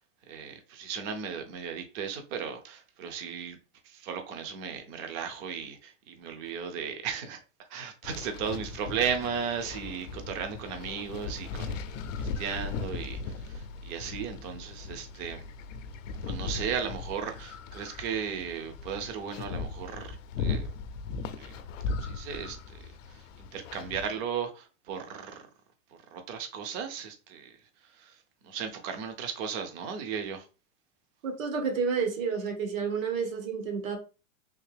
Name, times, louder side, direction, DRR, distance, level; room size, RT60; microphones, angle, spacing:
voice 1, 0.3-3.6 3.8-7.4 7.7-11.8 12.2-15.5 16.2-20.7 21.3-21.6 21.9-22.8 23.1-25.5 26.1-27.5 27.9-30.5, right 7 dB, 30° right, 0.5 m, -36 dB
sound 1, 8.0-24.1, left 4 dB, 70° left, 0.6 m, -38 dB
voice 2, 31.2-34.0, right 5 dB, 80° right, 1.3 m, -30 dB
3.4 x 2.7 x 3.3 m
supercardioid pair, 150°, 39 cm